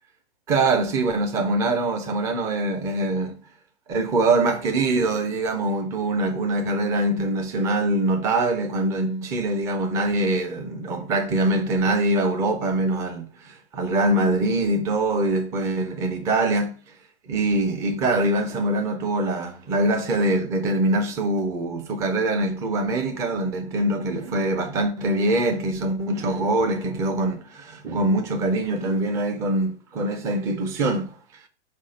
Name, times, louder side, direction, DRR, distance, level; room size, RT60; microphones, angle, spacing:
voice 1, 0.5-3.3 3.9-16.7 17.3-31.2, right 2 dB, 10° right, 0.3 m, -23 dB
4.6 x 4.2 x 5.0 m
hypercardioid pair, 140°, 35 cm